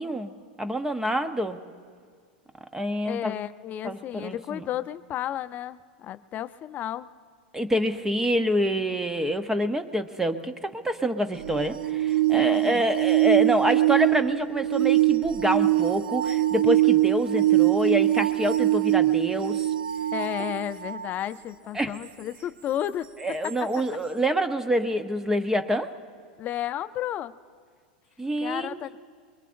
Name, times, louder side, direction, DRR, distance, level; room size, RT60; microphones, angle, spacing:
voice 1, 0.0-1.6 2.7-3.4 3.8-4.7 7.5-19.6 21.7-21.9 23.2-25.9 28.2-29.0, equal, 10° right, 9 dB, 0.8 m, -27 dB
voice 2, 3.0-7.1 12.4-12.8 20.1-23.1 23.4-23.7 26.4-27.3 28.4-29.0, left 11 dB, 35° left, 13 dB, 0.6 m, -32 dB
sound 1, 11.4-21.1 23.4-23.5, right 15 dB, 80° right, 0.9 m, -23 dB
24.0 x 22.0 x 2.6 m, 2.1 s
hypercardioid pair, 110°, 5 cm